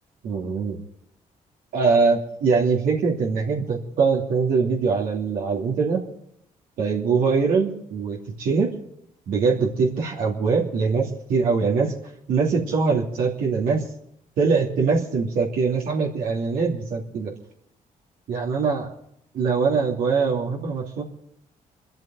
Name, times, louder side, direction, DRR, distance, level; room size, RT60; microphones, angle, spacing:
voice 1, 0.2-0.8 1.7-6.1 6.8-8.7 9.3-11.9 12.3-13.8 14.4-17.3 18.3-18.9 19.3-21.0, right 5 dB, 85° right, -2 dB, 2.8 m, -22 dB
25.5 x 13.5 x 3.9 m, 0.74 s
cardioid pair, 80°, 14 cm